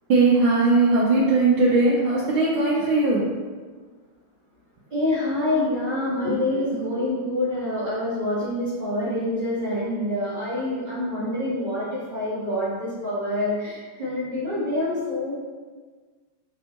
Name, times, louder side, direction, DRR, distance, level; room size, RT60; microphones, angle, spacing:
voice 1, 0.1-3.2, right 3 dB, 80° right, -6 dB, 1.5 m, -19 dB
voice 2, 4.9-15.3, left 1 dB, 30° right, -13 dB, 1.0 m, -26 dB
5.2 x 3.3 x 2.9 m, 1.5 s
omnidirectional pair, 2.3 m